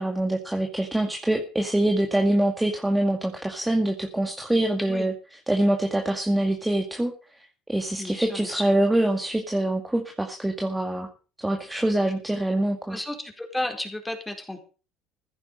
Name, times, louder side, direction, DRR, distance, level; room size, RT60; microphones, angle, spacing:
voice 1, 0.0-5.1 5.5-7.1 7.7-11.1 11.4-13.0, right 1 dB, 10° right, 3 dB, 2.1 m, -24 dB
voice 2, 8.0-8.8 12.9-14.6, left 1 dB, 10° left, 3 dB, 4.4 m, -33 dB
15.0 x 11.0 x 5.5 m, 0.37 s
supercardioid pair, 90°, 0 cm